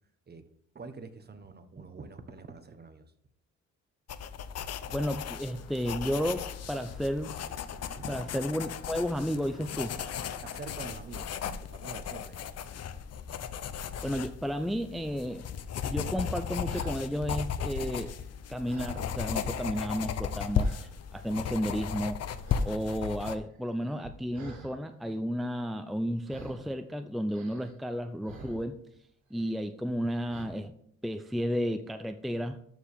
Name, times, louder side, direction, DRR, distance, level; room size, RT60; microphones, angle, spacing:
voice 1, 0.7-3.1 7.9-8.2 10.4-12.5, right 4 dB, 35° right, 9 dB, 1.2 m, -46 dB
sound 1, 4.1-23.4, left 7 dB, 55° left, 0.7 m, -36 dB
sound 2, 4.7-10.7, left 5 dB, 75° left, 1.6 m, -54 dB
voice 2, 4.9-7.4 8.1-9.9 14.0-15.5 15.8-18.1 18.5-22.2 22.6-28.8 29.3-30.7 31.0-32.6, equal, ahead, 8 dB, 0.6 m, -32 dB
sound 3, 16.1-17.1 17.5-19.3 19.6-20.2 20.5-21.0 21.5-22.1 22.4-22.7 23.0-24.7 26.2-26.8 27.3-29.0 29.3-29.6 30.3-30.5, right 3 dB, 80° right, 3.5 m, -50 dB
13.5 x 4.7 x 3.6 m, 0.69 s
cardioid pair, 90°, 30 cm